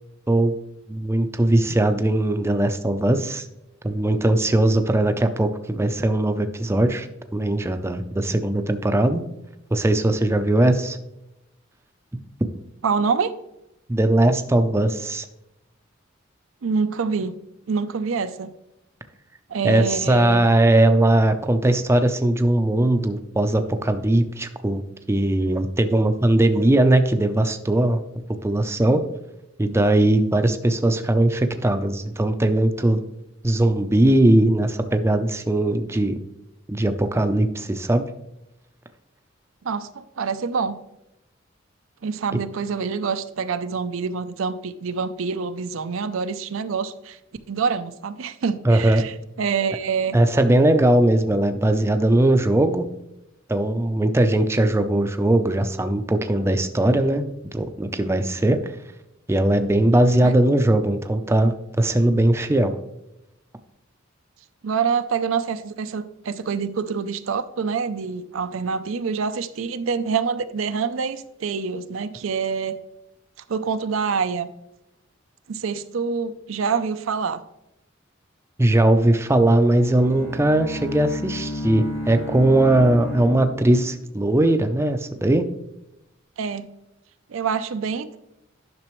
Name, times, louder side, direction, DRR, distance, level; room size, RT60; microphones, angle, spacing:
voice 1, 0.9-3.5 3.8-7.1 7.3-9.2 9.7-11.0 13.9-15.3 19.6-24.8 25.1-28.0 28.4-29.0 29.6-33.0 33.4-36.2 36.7-38.0 48.6-49.0 50.1-52.9 53.5-57.3 57.5-58.8 59.3-62.7 78.6-85.4, right 1 dB, 15° right, 7 dB, 0.5 m, -19 dB
voice 2, 12.8-13.3 16.6-17.4 17.7-18.5 19.5-20.4 39.6-40.8 42.0-47.2 47.5-49.1 49.4-50.2 60.2-60.3 64.6-72.8 73.5-74.5 75.5-77.4 86.4-86.7 87.3-88.2, right 5 dB, 80° right, 11 dB, 0.5 m, -26 dB
Bowed string instrument, 79.4-84.1, left 1 dB, 75° left, 2.1 m, -33 dB
10.5 x 6.0 x 3.1 m, 0.88 s
head